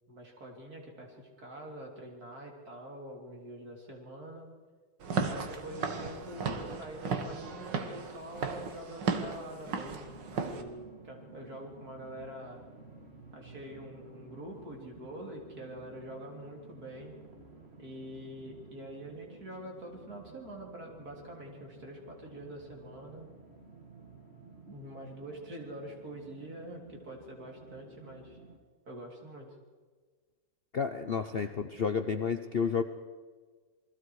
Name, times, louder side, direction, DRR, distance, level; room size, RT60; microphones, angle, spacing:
voice 1, 0.1-4.5 5.3-12.6 13.3-17.1 17.8-23.3 24.6-28.4 28.9-29.5, right 1 dB, 45° right, 0 dB, 4.0 m, -45 dB
Walk footsteps / Siren, 5.0-10.6, right 5 dB, 65° right, 2.1 m, -35 dB
sound 1, 10.0-28.6, right 3 dB, 30° right, 2.8 m, -53 dB
voice 2, 30.7-32.8, left 6 dB, 85° left, 8 dB, 0.5 m, -31 dB
28.0 x 21.0 x 4.8 m, 1.5 s
omnidirectional pair, 2.2 m